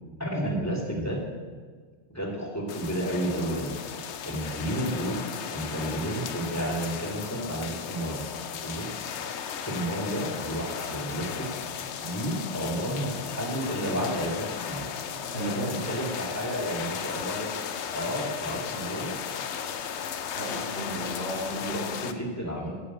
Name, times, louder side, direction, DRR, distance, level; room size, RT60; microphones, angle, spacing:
voice 1, 0.2-1.2 2.1-3.8 4.2-5.2 5.5-8.2 8.6-9.1 9.6-11.5 12.0-14.9 15.4-17.5 17.9-19.1 21.7-22.8, equal, 15° left, -2 dB, 2.3 m, -31 dB
sound 1, 2.7-22.1, left 7 dB, 80° left, 1.0 m, -35 dB
voice 2, 15.3-15.8 20.4-22.2, right 1 dB, 60° left, -7 dB, 3.4 m, -34 dB
10.5 x 8.3 x 7.5 m, 1.5 s
omnidirectional pair, 1.1 m